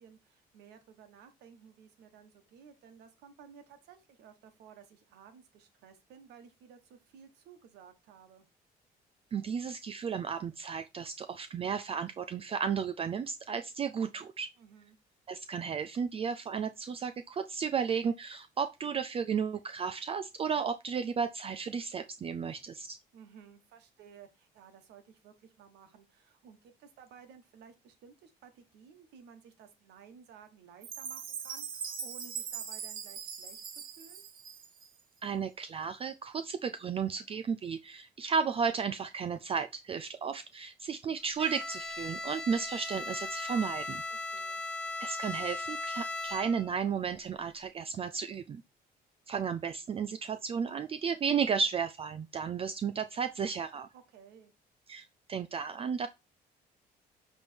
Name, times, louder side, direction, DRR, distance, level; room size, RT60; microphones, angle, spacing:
voice 1, 0.0-8.5 14.6-15.0 23.1-34.3 44.1-44.6 53.9-54.5, right 7 dB, 80° right, 1.4 m, -56 dB
voice 2, 9.3-14.5 15.3-23.0 35.2-44.0 45.0-48.6 49.3-53.9 54.9-56.1, right 6 dB, 35° right, 0.4 m, -33 dB
Chime, 30.8-35.0, right 7 dB, 55° right, 1.1 m, -41 dB
Bowed string instrument, 41.4-46.8, left 2 dB, 5° left, 1.0 m, -38 dB
7.1 x 3.5 x 4.4 m
cardioid pair, 110°, 17 cm